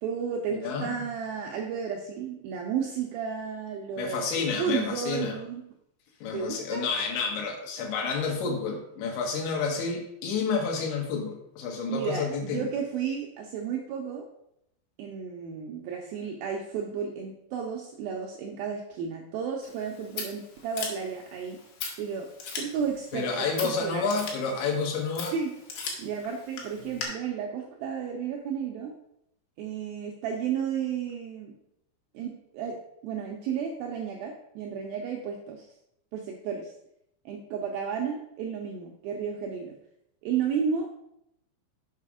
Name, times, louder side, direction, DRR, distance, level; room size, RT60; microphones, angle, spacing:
voice 1, 0.0-5.6 6.3-6.9 11.9-14.3 15.0-21.6 22.0-24.1 25.3-25.5 26.0-28.9 29.6-31.5 32.1-32.8 33.0-35.7 36.1-36.7 37.3-39.8 40.2-40.9, right 7 dB, 80° right, 0 dB, 2.1 m, -33 dB
voice 2, 4.0-5.4 6.2-12.6 23.1-25.3, left 5 dB, 85° left, 2 dB, 3.7 m, -30 dB
Scissors, 19.6-27.0, left 5 dB, 65° left, 3.3 m, -40 dB
7.5 x 5.5 x 4.9 m, 0.80 s
omnidirectional pair, 5.1 m